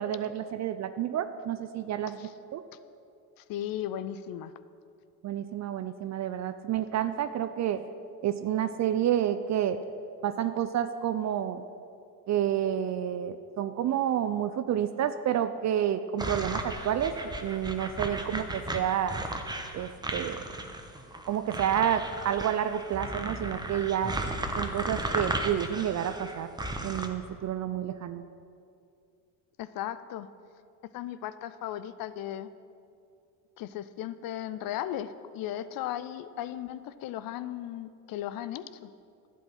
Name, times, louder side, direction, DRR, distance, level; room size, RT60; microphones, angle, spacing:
voice 1, 0.0-2.1 2.5-2.6 5.2-7.8 8.2-9.8 10.2-11.6 12.3-17.1 17.4-19.2 19.7-20.4 21.3-24.1 24.6-26.5 26.8-28.2, right 10 dB, 40° right, 11 dB, 0.5 m, -29 dB
voice 2, 3.4-4.5 29.6-30.3 30.8-32.5 33.6-38.9, left 11 dB, 50° left, 14 dB, 0.6 m, -36 dB
sound 1, 16.2-27.1, right 2 dB, 10° right, 1.0 m, -35 dB
11.0 x 8.4 x 5.8 m, 2.4 s
hypercardioid pair, 70°, 45 cm